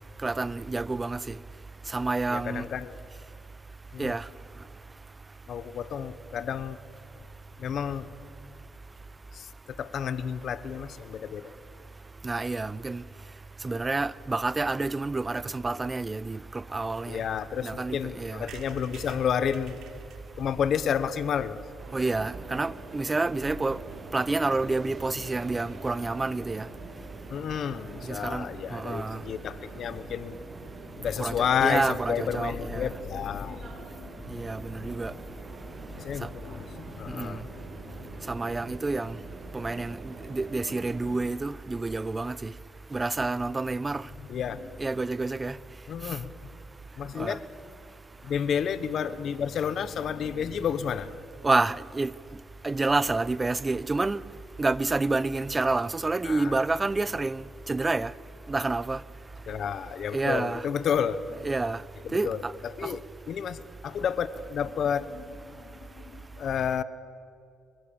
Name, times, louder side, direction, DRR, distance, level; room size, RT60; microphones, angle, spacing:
voice 1, 0.2-1.3 1.9-2.7 4.0-4.3 12.2-13.0 13.6-17.2 17.6-18.5 21.9-23.8 24.1-26.7 28.1-29.2 31.2-32.9 34.3-35.1 37.1-37.4 38.3-39.2 39.5-42.5 42.9-44.1 44.8-45.6 47.2-47.4 51.4-52.1 52.6-54.2 54.6-58.1 58.5-59.0 60.1-60.6 61.4-61.8 62.1-62.5 62.8-63.0, right 3 dB, 25° right, 0.7 m, -29 dB
voice 2, 2.3-3.0 3.9-4.1 5.5-6.8 7.6-8.1 9.3-11.5 17.1-20.0 20.3-21.6 27.3-30.4 31.0-34.1 36.0-38.2 44.3-44.9 45.9-46.5 47.0-47.5 48.2-51.2 56.2-56.6 59.5-61.2 62.0-63.0 63.3-66.8, left 8 dB, 65° left, 1.0 m, -31 dB
sound 1, 18.5-22.2 22.6-22.7 22.9-23.0 23.2-23.3 23.5-23.7, right 7 dB, 75° right, 3.0 m, -49 dB
sound 2, 21.8-41.2, right 3 dB, 50° right, 6.7 m, -44 dB
26.5 x 23.5 x 7.1 m
cardioid pair, 90°, 0 cm